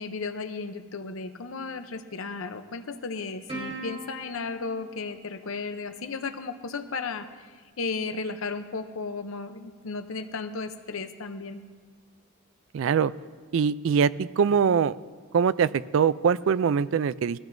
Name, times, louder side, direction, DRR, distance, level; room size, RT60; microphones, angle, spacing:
voice 1, 0.0-11.6, left 4 dB, 75° left, 9 dB, 0.7 m, -34 dB
Plucked string instrument, 3.5-6.2, right 1 dB, 30° right, 4.4 m, -41 dB
voice 2, 12.7-13.1 13.5-15.0 15.3-17.4, right 6 dB, 70° right, 17 dB, 0.3 m, -23 dB
20.0 x 14.5 x 2.6 m, 1.5 s
head